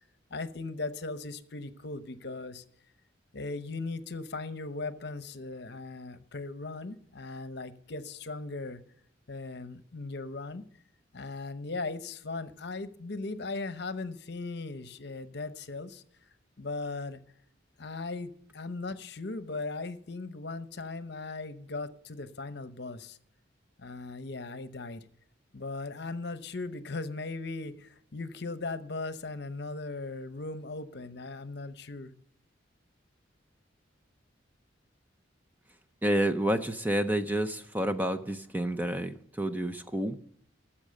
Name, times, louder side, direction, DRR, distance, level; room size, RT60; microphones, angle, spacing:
voice 1, 0.3-2.6 3.3-8.8 9.3-10.6 11.1-16.0 16.6-17.2 17.8-23.2 23.8-25.1 25.5-32.1, left 3 dB, 55° left, 0.8 m, -38 dB
voice 2, 36.0-40.2, right 1 dB, 10° right, 0.6 m, -29 dB
14.0 x 7.3 x 6.5 m
head